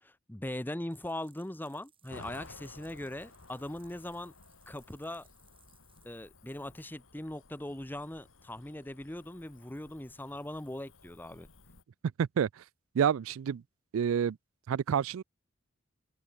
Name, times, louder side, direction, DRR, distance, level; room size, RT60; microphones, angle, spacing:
voice 1, 0.0-4.3 4.7-5.3 6.0-11.5, left 1 dB, 10° left, 0.8 m, -40 dB
sound 1, 0.9-6.1, right 8 dB, 25° right, 4.3 m, -67 dB
Cricket / Motor vehicle (road), 2.1-11.8, left 3 dB, 75° left, 2.6 m, -55 dB
voice 2, 12.2-12.5 12.9-13.6 13.9-14.4 14.7-15.2, right 8 dB, 75° right, 0.3 m, -28 dB
open air
head